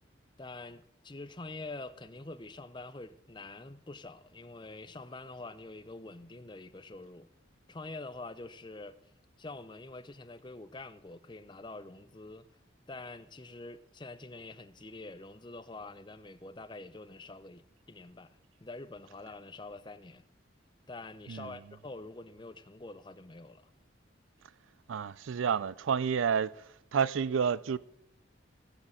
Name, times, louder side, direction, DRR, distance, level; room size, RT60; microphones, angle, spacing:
voice 1, 0.4-7.3 7.7-9.0 9.4-12.5 12.9-20.2 20.9-23.7, left 2 dB, 25° left, 0.6 m, -46 dB
voice 2, 24.9-26.6 26.9-27.8, right 7 dB, 80° right, 0.4 m, -29 dB
18.0 x 6.6 x 8.7 m
head